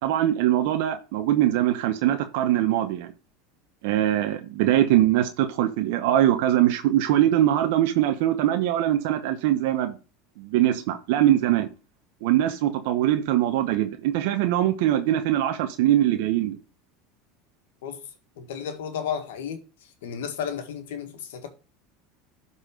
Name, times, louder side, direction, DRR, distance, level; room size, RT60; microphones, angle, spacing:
voice 1, 0.0-3.1 3.8-10.0 10.4-11.7 12.2-16.6, right 12 dB, 70° right, 0.9 m, -22 dB
voice 2, 18.4-19.6 20.0-21.5, left 8 dB, 85° left, 1.6 m, -33 dB
12.0 x 4.2 x 5.1 m
supercardioid pair, 110°, 0 cm